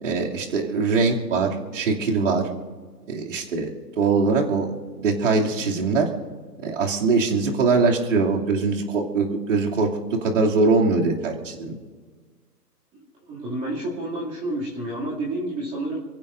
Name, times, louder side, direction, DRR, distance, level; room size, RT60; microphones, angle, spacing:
voice 1, 0.0-2.5 3.1-4.7 5.0-6.1 6.6-11.7, right 4 dB, 50° right, -1 dB, 2.9 m, -22 dB
voice 2, 12.9-16.0, right 1 dB, 15° right, -6 dB, 2.7 m, -30 dB
30.0 x 15.5 x 2.7 m, 1.5 s
figure-of-eight pair, 140°, 49 cm